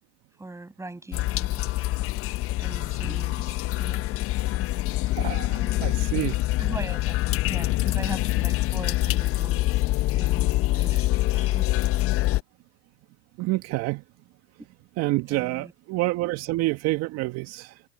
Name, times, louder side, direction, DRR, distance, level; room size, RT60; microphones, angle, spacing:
voice 1, 0.4-1.7 2.6-4.1 5.5-6.2 6.6-11.7 15.3-15.7, right 2 dB, 10° right, 7.0 m, -41 dB
sound 1, 1.1-12.4, left 17 dB, 45° left, 1.2 m, -25 dB
voice 2, 5.2-6.4 13.4-14.0 15.0-17.8, right 20 dB, 50° right, 2.0 m, -28 dB
hypercardioid pair, 95°, 32 cm